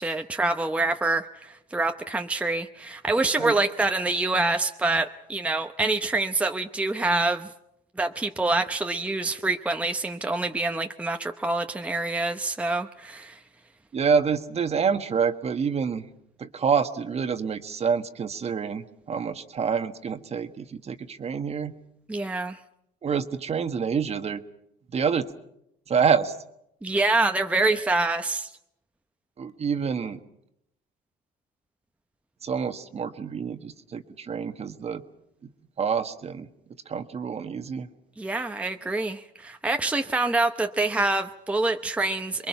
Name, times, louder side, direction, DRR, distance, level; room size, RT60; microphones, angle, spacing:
voice 1, 0.0-7.5 8.0-13.4 22.1-22.6 26.8-28.5 38.2-42.5, right 2 dB, 10° right, 5 dB, 0.9 m, -26 dB
voice 2, 13.9-16.0 16.4-21.7 23.0-24.4 24.9-25.3 25.9-26.3 29.4-30.2 32.4-35.0 35.8-36.5 36.9-37.9, right 6 dB, 40° right, 9 dB, 1.4 m, -27 dB
27.5 x 22.0 x 5.8 m, 0.79 s
cardioid pair, 110°, 17 cm